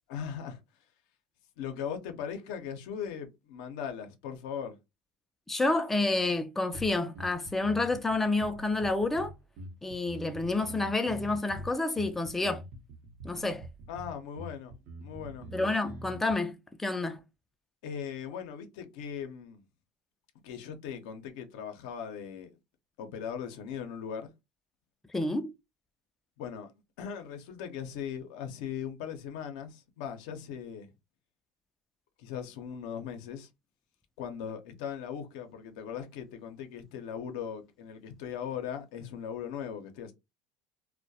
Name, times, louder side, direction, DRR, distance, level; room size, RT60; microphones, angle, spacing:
voice 1, 0.1-0.6 1.6-4.8 13.9-14.7 15.0-15.5 17.8-19.6 20.4-22.6 23.0-24.3 26.4-26.7 27.0-30.9 32.2-33.5 34.2-40.1, left 8 dB, 80° left, 0.6 m, -39 dB
voice 2, 5.5-9.3 9.8-12.6 13.2-13.7 15.5-17.2 25.1-25.5, left 2 dB, 10° left, 0.4 m, -29 dB
sound 1, 6.7-16.3, right 1 dB, 60° right, 0.7 m, -45 dB
2.2 x 2.1 x 2.6 m
supercardioid pair, 105°, 3 cm